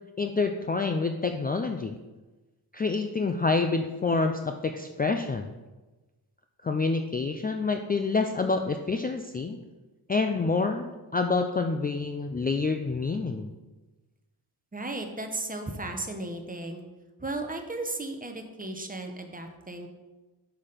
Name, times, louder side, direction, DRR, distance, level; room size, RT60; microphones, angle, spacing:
voice 1, 0.2-2.0 2.7-5.5 6.6-9.6 10.1-13.5, left 4 dB, 25° left, 5 dB, 0.4 m, -27 dB
voice 2, 14.7-16.8 17.2-19.9, right 2 dB, 20° right, 5 dB, 0.9 m, -35 dB
6.3 x 5.8 x 5.0 m, 1.2 s
wide cardioid pair, 110°, 40 cm